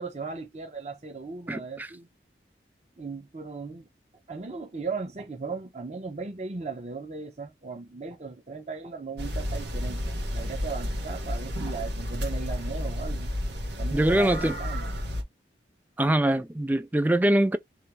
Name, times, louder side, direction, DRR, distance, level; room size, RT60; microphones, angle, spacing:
voice 1, 0.0-2.1 3.0-3.9 4.3-13.3 13.8-14.9, right 4 dB, 40° right, 0.8 m, -37 dB
voice 2, 1.5-1.9 13.9-14.5 16.0-17.6, right 1 dB, 10° right, 0.3 m, -23 dB
sound 1, 9.2-15.2, equal, 80° right, 1.3 m, -31 dB
3.2 x 3.0 x 4.7 m
head